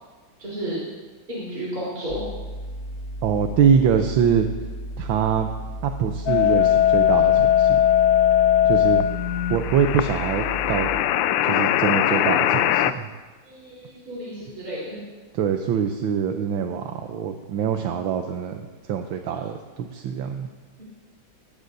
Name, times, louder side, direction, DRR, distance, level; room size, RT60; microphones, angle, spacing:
voice 1, 0.4-0.8 1.3-2.2 13.4-15.0, right 1 dB, 45° right, -8 dB, 4.2 m, -32 dB
sound 1, 2.1-11.0, equal, 40° left, 1.5 m, -34 dB
voice 2, 3.2-4.5 5.0-5.5 5.8-7.8 8.6-9.0 9.5-10.9 11.4-13.1 15.3-18.6 18.9-20.5, right 7 dB, 80° right, 5 dB, 1.5 m, -24 dB
sound 2, 6.3-12.9, left 11 dB, 75° left, 1.2 m, -20 dB
19.5 x 17.0 x 2.6 m, 1.4 s
omnidirectional pair, 2.2 m